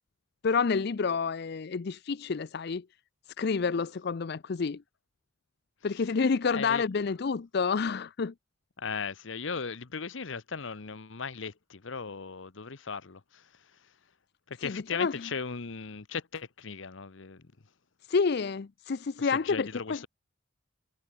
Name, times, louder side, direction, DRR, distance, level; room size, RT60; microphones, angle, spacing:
voice 1, 0.4-2.8 3.4-4.8 5.8-8.3 14.6-15.1 18.1-20.0, left 5 dB, 55° left, 0.5 m, -29 dB
voice 2, 5.9-6.9 8.8-13.5 14.5-17.5 19.2-20.1, left 5 dB, 70° left, 0.9 m, -38 dB
head